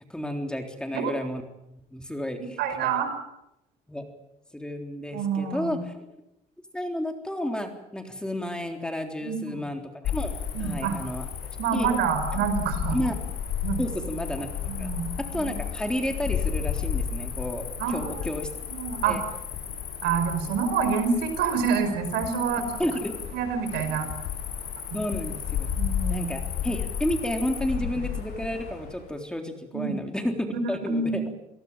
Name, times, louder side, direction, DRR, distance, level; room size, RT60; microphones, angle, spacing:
voice 1, 0.1-1.4 1.9-2.6 3.9-4.0 4.5-5.9 6.7-11.3 11.7-11.9 12.9-13.2 13.8-14.5 14.8-14.9 15.3-18.5 19.1-19.2 22.8-23.1 24.9-25.7 26.1-31.2, left 1 dB, 5° left, 4 dB, 3.7 m, -31 dB
voice 2, 2.6-3.2 5.1-5.8 9.2-9.4 10.5-11.0 11.6-13.0 13.6-13.8 14.7-15.5 17.8-18.3 18.7-19.2 20.0-22.7 23.3-24.1 24.9-25.0 25.8-26.3 29.7-30.0 30.8-31.4, right 6 dB, 85° right, 8 dB, 5.2 m, -27 dB
Cricket, 10.0-29.0, left 8 dB, 75° left, 8.0 m, -33 dB
27.5 x 18.5 x 7.5 m, 0.87 s
cardioid pair, 110°, 17 cm